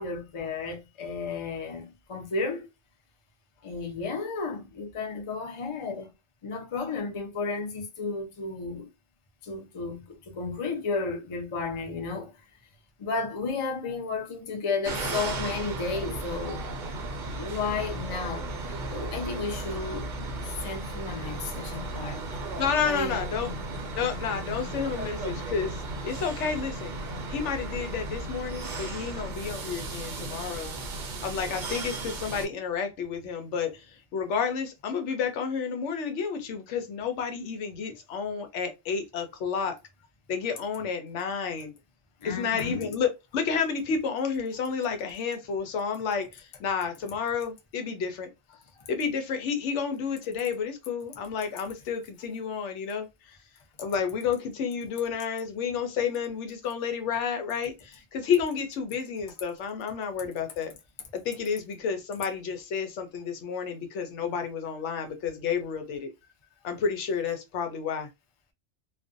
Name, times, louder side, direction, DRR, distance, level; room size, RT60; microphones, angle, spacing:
voice 1, 0.0-2.7 3.6-6.1 6.4-8.9 9.4-12.3 13.0-16.6 17.4-20.1 20.4-22.2 22.8-23.6 42.2-43.0, left 4 dB, 40° left, 0.4 m, -33 dB
sound 1, 14.8-32.5, right 2 dB, 55° right, 0.6 m, -35 dB
voice 2, 22.3-23.5 24.0-26.9 27.3-30.7 31.2-39.8 40.3-41.7 42.2-48.3 48.9-53.4 53.8-60.7 61.1-66.1 66.6-68.1, left 6 dB, 75° left, 0.9 m, -31 dB
2.4 x 2.1 x 2.5 m
omnidirectional pair, 1.2 m